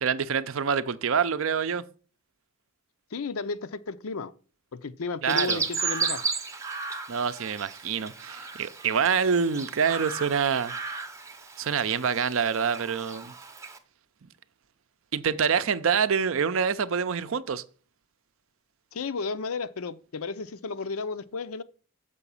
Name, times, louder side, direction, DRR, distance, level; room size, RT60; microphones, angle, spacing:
voice 1, 0.0-1.8 5.2-5.6 7.1-10.7 11.6-13.3 15.1-17.6, right 6 dB, 65° right, 0.5 m, -26 dB
voice 2, 3.1-4.3 4.7-6.2 18.9-21.6, left 4 dB, 75° left, 0.6 m, -33 dB
Chirp tweet, 5.3-13.8, right 5 dB, 15° right, 0.6 m, -34 dB
6.9 x 4.9 x 6.9 m
head